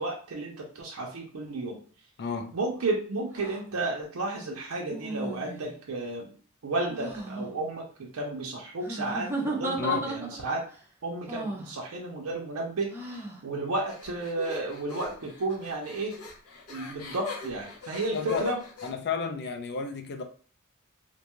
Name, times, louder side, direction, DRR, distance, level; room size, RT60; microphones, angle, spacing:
voice 1, 0.0-1.8 2.5-6.3 6.6-10.6 11.0-16.1 16.7-18.6, right 2 dB, 90° right, 0.5 m, -32 dB
voice 2, 2.2-2.5 9.8-10.1 18.1-18.5 18.8-20.2, left 5 dB, 50° left, 0.4 m, -31 dB
sound 1, 3.3-3.6 4.9-5.8 6.9-7.5 8.8-10.6 11.3-11.7 12.9-13.4, right 2 dB, 10° right, 0.5 m, -35 dB
sound 2, 13.9-18.9, left 4 dB, 80° left, 0.7 m, -41 dB
2.6 x 2.2 x 2.9 m
head